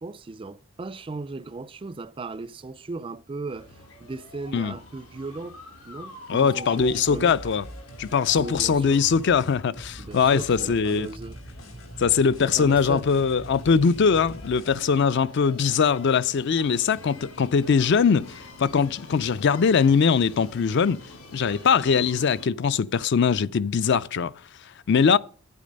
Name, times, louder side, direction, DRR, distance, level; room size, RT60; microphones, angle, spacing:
voice 1, 0.0-5.6 5.9-7.4 8.4-9.0 10.0-11.4 12.4-13.1, right 3 dB, 25° right, 0.4 m, -37 dB
sound 1, 3.5-22.5, left 2 dB, 85° left, 3.0 m, -46 dB
sound 2, 6.3-14.8, equal, 70° left, 2.5 m, -43 dB
voice 2, 6.3-7.7 8.0-11.1 12.0-21.0 21.3-24.3 24.9-25.2, left 6 dB, 55° left, 0.4 m, -21 dB
9.3 x 8.6 x 5.2 m
head